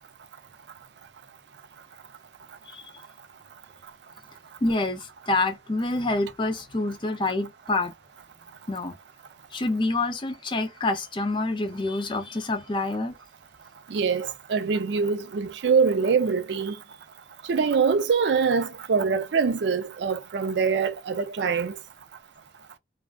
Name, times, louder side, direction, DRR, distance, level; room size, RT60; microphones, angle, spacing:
voice 1, 4.6-7.9 8.7-9.0 9.5-13.1, left 2 dB, 25° left, 0.4 m, -27 dB
voice 2, 13.9-16.7 17.5-21.8, right 5 dB, 70° right, 0.4 m, -24 dB
2.4 x 2.3 x 2.2 m
head